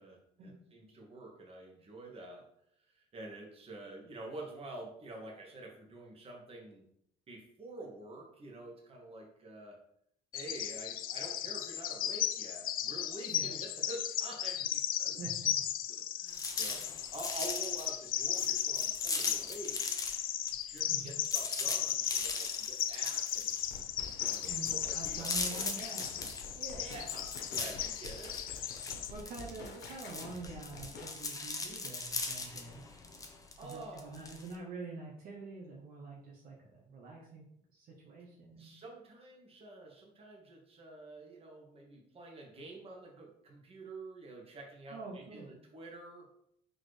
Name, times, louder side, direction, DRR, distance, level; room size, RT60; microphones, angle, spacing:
voice 1, 0.0-2.5 2.8-6.8 7.3-9.8 10.3-15.2 16.0-19.8 20.6-23.6 24.3-25.8 26.7-28.7 33.6-34.4 38.5-46.3, right 2 dB, 35° right, 0 dB, 1.2 m, -48 dB
Bird vocalization bird call bird song, 10.3-29.1, left 11 dB, 60° left, 0.4 m, -36 dB
voice 2, 15.2-15.6 20.9-21.2 24.5-26.2 26.5-27.0 29.1-32.8 33.6-37.4 37.7-38.7 44.9-45.6, right 3 dB, 60° right, -2 dB, 0.8 m, -46 dB
sound 1, 16.3-20.2 20.5-34.5, left 3 dB, 20° left, 0.6 m, -40 dB
sound 2, 23.6-31.1, left 3 dB, 80° left, 0.8 m, -49 dB
4.3 x 3.1 x 3.2 m, 0.71 s
cardioid pair, 110°, 17 cm